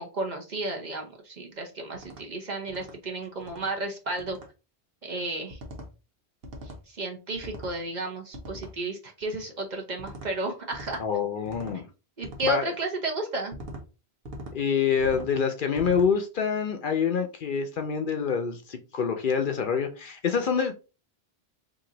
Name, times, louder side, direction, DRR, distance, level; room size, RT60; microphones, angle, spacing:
voice 1, 0.0-4.4 5.0-5.6 6.9-11.0 12.2-13.6, right 2 dB, 45° right, 3 dB, 0.8 m, -32 dB
sound 1, 1.9-2.2 2.7-3.0 3.4-3.7 4.2-4.5 5.5-5.9 6.4-6.8 7.4-7.8 8.3-8.8 10.0-10.3 10.7-11.0 11.5-11.8 12.2-12.6 13.5-13.8 14.3-14.6 15.0-15.3 15.8-16.1, equal, 70° right, 1.1 m, -41 dB
voice 2, 11.0-11.9 12.4-12.7 14.5-20.7, left 6 dB, 60° left, 5 dB, 0.7 m, -26 dB
3.0 x 2.5 x 3.7 m, 0.31 s
omnidirectional pair, 1.1 m